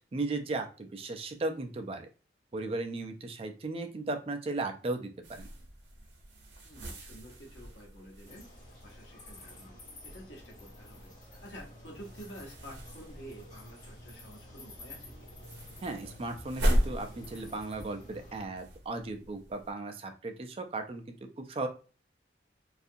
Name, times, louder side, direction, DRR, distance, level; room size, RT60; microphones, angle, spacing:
voice 1, 0.1-2.1 2.5-5.5 15.8-21.7, right 2 dB, 30° right, 6 dB, 0.3 m, -36 dB
sound 1, 5.2-19.7, equal, 90° right, 0.7 m, -38 dB
voice 2, 6.6-8.5 8.8-9.7 10.0-15.3, equal, 80° left, -1 dB, 0.8 m, -50 dB
sound 2, 8.3-18.5, left 1 dB, 40° left, 0.9 m, -52 dB
2.6 x 2.4 x 2.5 m, 0.36 s
head